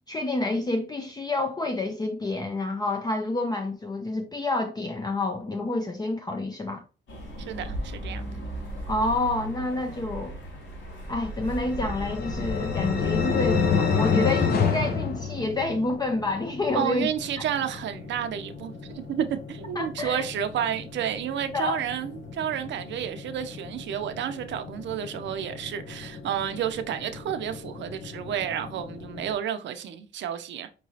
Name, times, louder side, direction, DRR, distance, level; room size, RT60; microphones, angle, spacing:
voice 1, 0.1-6.8 8.9-10.4 11.1-17.1 17.4-17.5 19.8-20.2 21.5-21.8, left 2 dB, 20° left, 0.5 m, -28 dB
sound 1, 7.1-14.1, right 1 dB, 75° left, 1.8 m, -37 dB
voice 2, 7.4-8.3 16.7-30.7, right 9 dB, 65° right, 0.6 m, -31 dB
sound 2, 11.4-16.0, left 6 dB, 50° left, 0.8 m, -25 dB
sound 3, 13.3-29.3, left 4 dB, 90° left, 0.9 m, -42 dB
4.6 x 3.0 x 2.7 m
cardioid pair, 90°, 20 cm